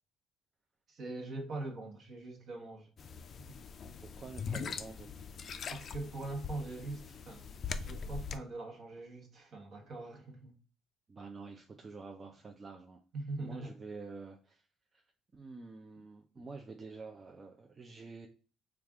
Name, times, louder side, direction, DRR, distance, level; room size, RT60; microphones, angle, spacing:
voice 1, 0.9-2.9 3.4-3.6 5.7-7.4 7.8-10.6 13.1-13.8, right 2 dB, 55° right, 1.1 m, -42 dB
sound 1, 3.0-8.4, left 6 dB, 45° left, 0.3 m, -42 dB
voice 2, 4.0-5.2 11.1-13.0 13.4-14.6 14.9-15.0 15.3-18.3, right 4 dB, 30° right, 0.5 m, -48 dB
3.3 x 2.4 x 3.6 m
cardioid pair, 95°, 0 cm